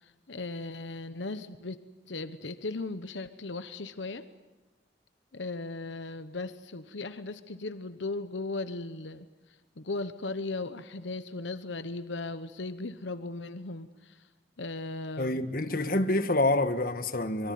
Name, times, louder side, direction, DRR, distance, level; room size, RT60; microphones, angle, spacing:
voice 1, 0.0-1.8 2.1-4.2 5.3-9.3 9.8-14.3 14.6-15.4, left 3 dB, 80° left, 1.1 m, -37 dB
voice 2, 15.2-17.5, left 2 dB, 50° left, 1.6 m, -27 dB
25.5 x 23.5 x 9.4 m
head